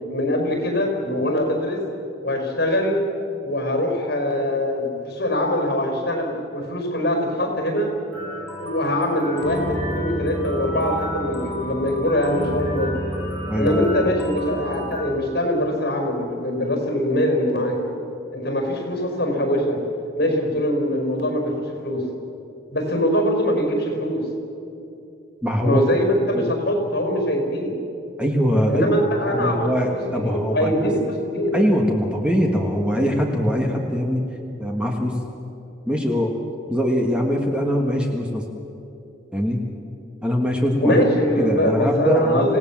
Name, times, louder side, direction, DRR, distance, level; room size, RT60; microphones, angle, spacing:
voice 1, 0.0-1.8 2.2-3.0 3.4-7.9 8.6-12.9 13.5-17.8 18.3-19.8 20.1-22.0 22.7-24.3 25.6-27.7 28.7-31.6 40.8-42.6, equal, 55° left, 3 dB, 5.2 m, -23 dB
sound 1, 8.1-15.1, equal, 15° left, 7.0 m, -30 dB
voice 2, 13.5-13.9 25.4-25.8 26.3-26.5 28.2-28.9 29.3-30.7 31.5-34.2 34.6-35.2 35.9-36.4 36.7-38.4 39.3-39.7 40.2-41.0 41.4-42.6, equal, 5° right, 1 dB, 1.6 m, -22 dB
27.0 x 17.5 x 7.4 m, 2.8 s
head